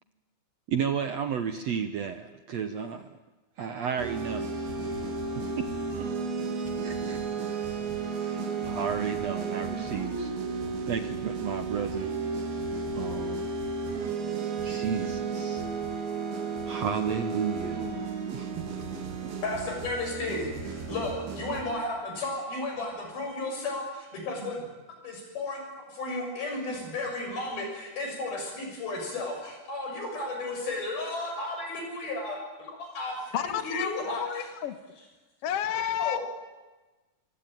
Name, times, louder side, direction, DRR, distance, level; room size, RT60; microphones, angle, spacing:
voice 1, 0.7-3.2 3.6-4.6 4.8-5.0 5.6-5.7 6.8-7.6 8.2-10.3 10.9-12.1 12.9-13.5 14.6-15.6 16.6-17.9 18.3-18.7 19.2-19.3, right 7 dB, 65° right, 9 dB, 1.7 m, -33 dB
sound 1, 4.0-21.6, right 4 dB, 85° right, 4.7 m, -33 dB
voice 2, 19.4-24.7 25.0-32.4 32.8-34.5 36.0-36.2, left 2 dB, 80° left, 2 dB, 8.6 m, -33 dB
voice 3, 33.3-34.7 35.4-36.2, left 10 dB, 50° left, 9 dB, 2.0 m, -31 dB
26.0 x 24.5 x 9.2 m, 1.2 s
omnidirectional pair, 4.2 m